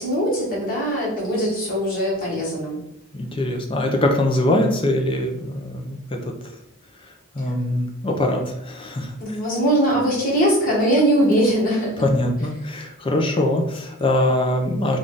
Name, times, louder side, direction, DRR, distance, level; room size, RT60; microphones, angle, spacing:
voice 1, 0.0-2.8 7.4-7.5 9.2-12.0, right 1 dB, 40° left, -5 dB, 1.5 m, -21 dB
voice 2, 3.1-6.3 7.3-9.4 12.0-15.0, left 1 dB, 25° left, 2 dB, 0.5 m, -22 dB
3.6 x 2.4 x 3.8 m, 0.80 s
head